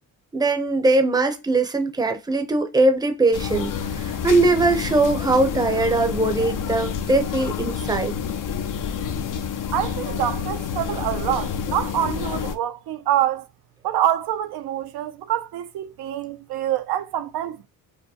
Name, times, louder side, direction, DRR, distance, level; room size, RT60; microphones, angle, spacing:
voice 1, 0.3-3.7 4.2-8.1, right 2 dB, 10° right, 0.6 m, -20 dB
sound 1, 3.3-12.6, left 7 dB, 55° left, 0.6 m, -28 dB
voice 2, 9.7-13.4 13.8-17.7, right 11 dB, 80° right, 0.5 m, -26 dB
4.7 x 2.1 x 2.8 m
cardioid pair, 105°, 38 cm